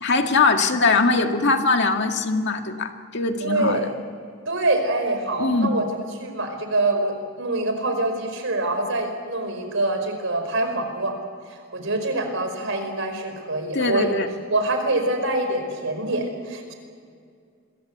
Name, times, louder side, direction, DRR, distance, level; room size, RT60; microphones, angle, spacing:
voice 1, 0.0-3.9 5.4-5.7 13.7-14.3, left 3 dB, 55° left, 5 dB, 2.0 m, -21 dB
voice 2, 3.4-3.9 4.5-5.9 6.2-11.2 11.7-14.2 14.5-16.7, right 2 dB, 65° right, 6 dB, 5.0 m, -25 dB
26.5 x 23.0 x 8.1 m, 2.3 s
head